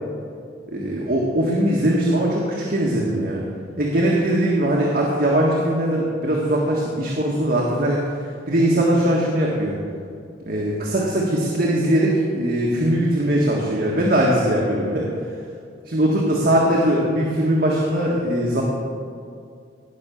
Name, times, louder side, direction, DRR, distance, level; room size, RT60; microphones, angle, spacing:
voice 1, 0.7-3.4 3.8-8.0 8.5-9.8 10.5-15.1 15.9-18.6, right 1 dB, 55° right, -3 dB, 1.7 m, -20 dB
18.0 x 6.1 x 7.0 m, 2.3 s
head